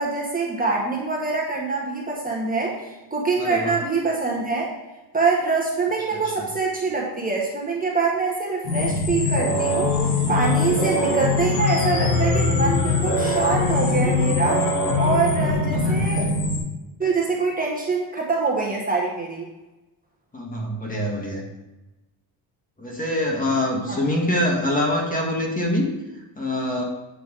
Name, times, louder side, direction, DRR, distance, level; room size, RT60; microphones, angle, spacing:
voice 1, 0.0-4.7 5.1-9.9 10.3-14.6 15.0-16.3 17.0-19.5 23.9-24.0, right 4 dB, 20° right, -2 dB, 1.7 m, -24 dB
voice 2, 3.4-3.7 6.1-6.5 15.7-16.3 20.3-21.4 22.8-25.9 26.4-26.8, left 1 dB, 20° left, -1 dB, 1.9 m, -25 dB
sound 1, 8.6-16.6, left 2 dB, 90° left, 2.9 m, -22 dB
8.7 x 5.8 x 3.8 m, 1.0 s
cardioid pair, 115°, 42 cm